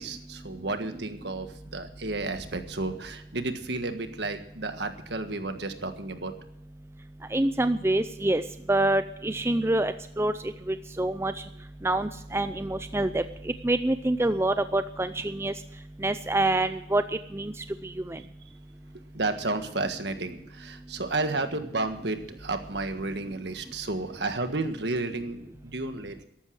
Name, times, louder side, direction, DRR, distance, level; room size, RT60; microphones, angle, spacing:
voice 1, 0.0-6.3 18.1-18.3 19.1-26.2, right 2 dB, 65° right, 7 dB, 1.6 m, -32 dB
voice 2, 7.3-8.4 8.7-10.3 10.7-11.3 11.8-13.2 13.6-15.5 16.0-17.0 17.3-17.5 18.1-18.2, right 2 dB, 15° right, 10 dB, 0.5 m, -26 dB
14.0 x 12.0 x 6.4 m, 0.77 s
head